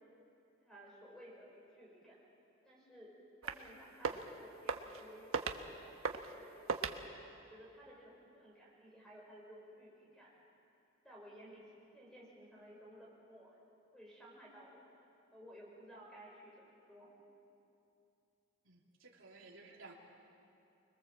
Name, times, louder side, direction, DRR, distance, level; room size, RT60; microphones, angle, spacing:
voice 1, 0.6-2.2 2.6-3.1 3.4-5.4 5.6-6.9 7.3-10.3 11.0-11.7 11.9-13.6 13.9-14.9 15.3-17.1, equal, 5° left, -4 dB, 5.9 m, -56 dB
sound 1, 3.4-3.7 3.9-4.3 4.7-5.0 5.3-5.6 6.0-6.3 6.7-7.0, right 4 dB, 90° right, 1.2 m, -37 dB
voice 2, 18.6-19.9, right 3 dB, 70° right, -2 dB, 3.3 m, -56 dB
25.5 x 21.5 x 7.6 m, 2.7 s
head